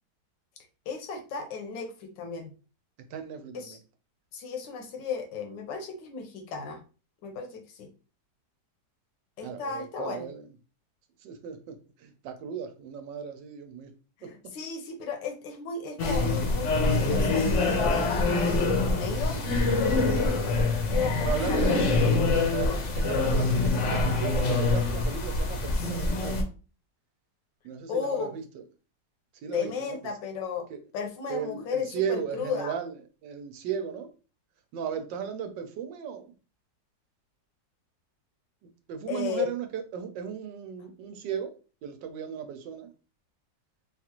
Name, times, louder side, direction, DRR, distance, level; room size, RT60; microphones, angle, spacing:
voice 1, 0.9-2.5 3.5-3.8 4.3-6.8 7.2-7.9 9.4-10.3 14.2-19.4 20.1-20.6 20.9-22.1 22.6-22.8 27.9-28.3 29.5-30.7 30.9-32.8 39.1-39.5, left 5 dB, 90° left, 1.5 m, -35 dB
voice 2, 3.1-3.8 9.4-10.4 11.2-11.7 12.0-13.9 21.2-21.7 22.5-26.3 27.6-28.3 29.4-30.0 30.7-30.8 31.3-32.9 33.2-34.1 34.7-36.3 38.9-41.5 41.8-42.9, right 8 dB, 85° right, 1.3 m, -35 dB
sound 1, 16.0-26.4, left 3 dB, 60° left, 0.8 m, -25 dB
3.7 x 2.4 x 2.9 m
omnidirectional pair, 1.9 m